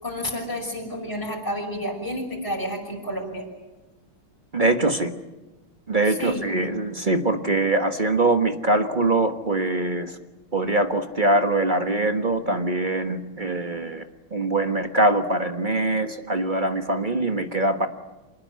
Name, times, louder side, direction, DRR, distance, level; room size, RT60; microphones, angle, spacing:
voice 1, 0.0-3.5 6.1-6.5, equal, 10° left, -2 dB, 5.8 m, -30 dB
voice 2, 4.5-5.1 5.9-10.1 10.5-14.0 14.3-17.9, right 2 dB, 25° right, 7 dB, 1.3 m, -23 dB
27.0 x 20.0 x 9.5 m, 1.1 s
omnidirectional pair, 2.4 m